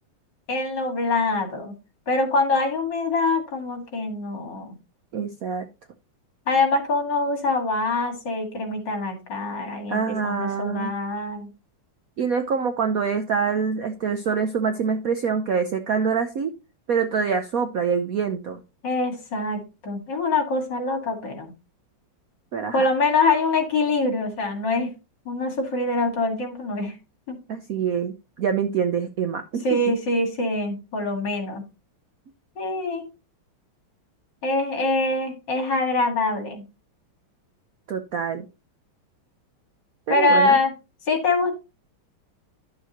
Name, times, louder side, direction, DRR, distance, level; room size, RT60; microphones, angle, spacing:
voice 1, 0.5-1.7 2.1-4.7 6.5-11.5 18.8-21.5 22.7-24.9 25.3-27.0 27.3-27.4 29.6-31.6 32.6-33.0 34.4-36.6 40.1-40.7 41.1-41.5, left 2 dB, 60° left, 5 dB, 2.5 m, -24 dB
voice 2, 5.1-5.7 9.9-10.9 12.2-16.5 16.9-18.6 22.5-22.8 27.5-29.9 37.9-38.5 40.1-40.6, right 6 dB, 65° right, 7 dB, 0.9 m, -25 dB
11.0 x 6.8 x 2.9 m, 0.28 s
omnidirectional pair, 2.2 m